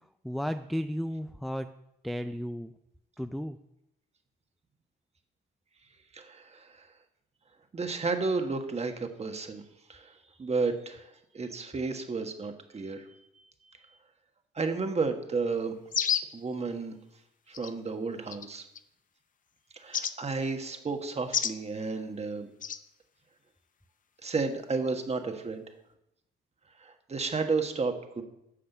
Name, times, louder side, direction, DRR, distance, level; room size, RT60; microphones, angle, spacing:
voice 1, 0.2-1.7 2.0-2.7 3.2-3.6, equal, ahead, 8 dB, 0.4 m, -33 dB
voice 2, 6.1-6.9 7.7-9.6 9.9-10.1 10.4-11.1 11.3-13.2 14.5-15.8 16.3-17.0 17.5-18.6 19.7-22.5 24.2-25.6 26.8-28.2, right 4 dB, 30° right, 6 dB, 1.5 m, -32 dB
sound 1, 15.9-16.4 17.5-17.7 18.3-18.8 19.9-20.1 21.3-21.6 22.6-22.8, left 7 dB, 40° left, 0.7 m, -29 dB
10.0 x 6.7 x 6.7 m, 0.83 s
cardioid pair, 90°, 20 cm